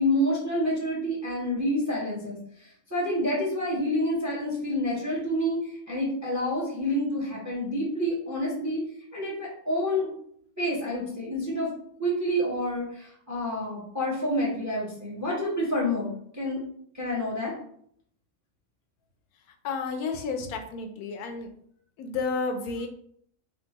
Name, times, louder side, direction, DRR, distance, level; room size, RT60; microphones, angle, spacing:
voice 1, 0.0-8.8 9.1-10.2 10.6-11.7 12.0-16.6 16.9-17.5, equal, 15° right, -4 dB, 0.6 m, -28 dB
voice 2, 19.6-21.5 22.0-22.9, left 4 dB, 85° left, 5 dB, 1.1 m, -31 dB
3.6 x 2.4 x 2.8 m, 0.65 s
omnidirectional pair, 1.5 m